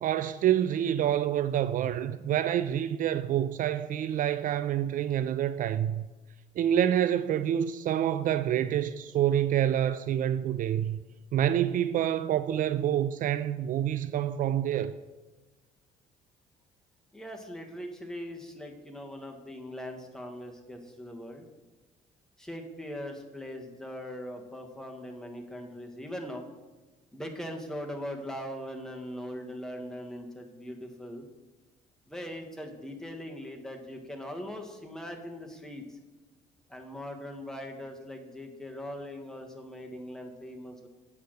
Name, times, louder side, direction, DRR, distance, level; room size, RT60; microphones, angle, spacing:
voice 1, 0.0-6.0 6.6-11.0 11.3-14.9, right 10 dB, 50° right, 0.4 m, -27 dB
voice 2, 17.1-21.4 22.4-26.4 27.1-31.2 32.1-35.8 36.7-40.9, equal, 5° left, 1.4 m, -40 dB
8.4 x 5.6 x 6.5 m
cardioid pair, 110°, 17 cm